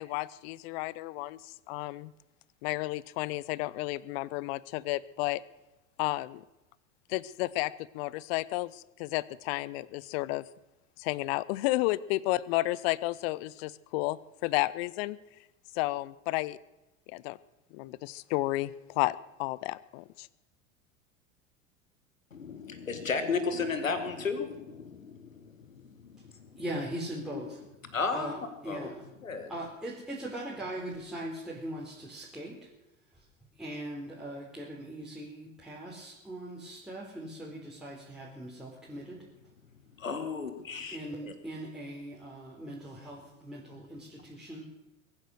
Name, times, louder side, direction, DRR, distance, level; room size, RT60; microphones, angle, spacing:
voice 1, 0.0-2.1 2.6-5.4 6.0-6.4 7.1-10.4 11.0-15.2 15.8-16.6 17.1-17.4 17.7-20.3, left 19 dB, 50° left, 21 dB, 0.8 m, -32 dB
voice 2, 22.3-26.6 27.9-28.4 28.7-28.9 29.2-29.5 40.0-41.3, left 4 dB, 85° left, 9 dB, 1.6 m, -34 dB
voice 3, 26.6-27.6 28.1-29.1 29.5-32.7 33.6-39.2 40.9-44.7, right 1 dB, ahead, -6 dB, 3.8 m, -40 dB
22.5 x 9.9 x 6.4 m, 0.98 s
figure-of-eight pair, 80°, 39 cm